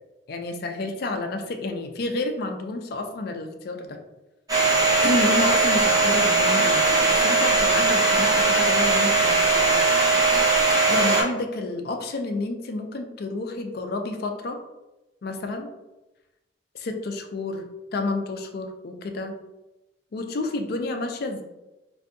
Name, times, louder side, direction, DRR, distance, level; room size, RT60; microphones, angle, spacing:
voice 1, 0.3-4.0 5.0-9.8 10.9-14.6 15.2-15.7 16.7-19.3 20.1-21.4, left 2 dB, 55° left, 6 dB, 0.4 m, -30 dB
Domestic sounds home sounds, 4.5-11.2, right 3 dB, 20° right, 0.8 m, -20 dB
3.3 x 2.6 x 2.6 m, 1.0 s
head